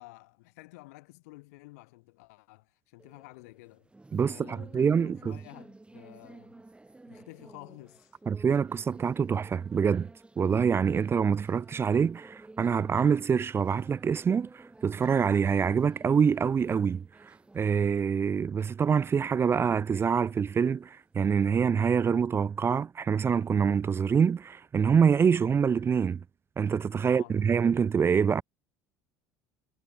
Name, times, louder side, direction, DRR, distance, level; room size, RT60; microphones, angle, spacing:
voice 1, 0.0-3.9 4.3-6.6 7.1-8.2 27.0-27.4, left 23 dB, 70° left, 2.3 m, -51 dB
sound 1, 3.0-21.4, right 2 dB, 10° right, 4.4 m, -53 dB
voice 2, 4.1-5.3 8.3-10.1 10.4-26.2 26.6-28.4, right 6 dB, 30° right, 0.5 m, -25 dB
hypercardioid pair, 65°, 9 cm